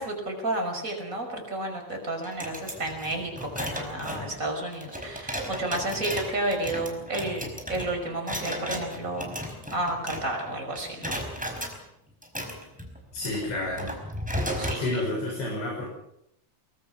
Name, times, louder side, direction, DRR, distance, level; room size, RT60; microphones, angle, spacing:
voice 1, 0.0-9.4 9.7-11.2 14.6-14.9, right 1 dB, 15° right, 2 dB, 5.6 m, -31 dB
sound 1, 2.2-10.5 10.8-11.8 12.2-14.8, equal, ahead, 4.2 m, -35 dB
voice 2, 13.1-13.9 14.8-15.9, left 2 dB, 70° left, -2 dB, 8.5 m, -30 dB
23.5 x 23.0 x 6.1 m, 0.77 s
omnidirectional pair, 5.3 m